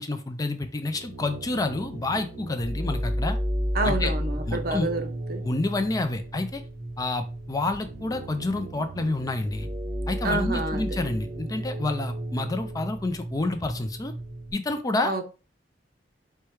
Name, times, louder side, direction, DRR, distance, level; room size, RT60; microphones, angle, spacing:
voice 1, 0.0-3.4 3.8-4.1 4.5-4.9 5.4-6.6 7.0-9.7 10.1-14.1 14.5-15.1, left 2 dB, 20° left, 7 dB, 0.4 m, -29 dB
sound 1, 0.8-14.5, equal, 40° right, 1.2 m, -33 dB
voice 2, 3.7-5.5 10.2-11.2 15.0-15.2, right 2 dB, 55° right, 7 dB, 0.7 m, -29 dB
4.7 x 2.2 x 4.5 m, 0.33 s
head